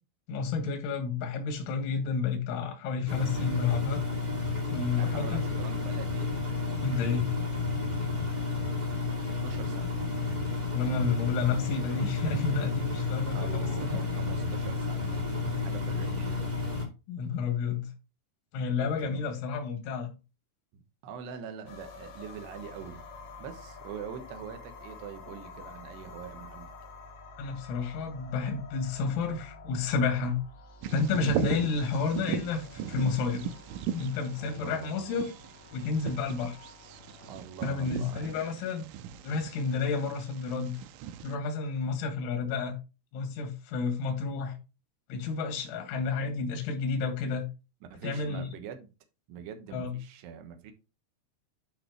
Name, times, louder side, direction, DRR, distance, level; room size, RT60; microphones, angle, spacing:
voice 1, 0.3-4.0 4.7-5.4 6.8-7.3 10.7-14.0 15.3-15.6 17.1-17.9 18.5-20.1 27.4-30.4 30.9-33.5 33.9-35.3 35.7-36.6 37.6-38.8 39.2-40.8 41.2-42.8 43.1-44.6 45.1-47.5 48.0-48.5 49.7-50.0, left 5 dB, 80° left, 4.2 m, -30 dB
Engine, 3.1-16.8, left 3 dB, 40° right, 0.5 m, -31 dB
voice 2, 5.0-6.3 9.4-10.0 13.3-16.5 19.0-19.3 20.7-23.0 23.4-26.7 34.4-35.3 37.3-38.6 47.9-48.9 49.3-50.7, right 7 dB, 70° right, 3.1 m, -44 dB
sound 1, 21.7-37.3, left 3 dB, 50° left, 3.3 m, -49 dB
Bird vocalization bird call bird song, 30.8-41.3, right 10 dB, 85° right, 3.1 m, -38 dB
12.0 x 4.9 x 3.1 m
omnidirectional pair, 5.5 m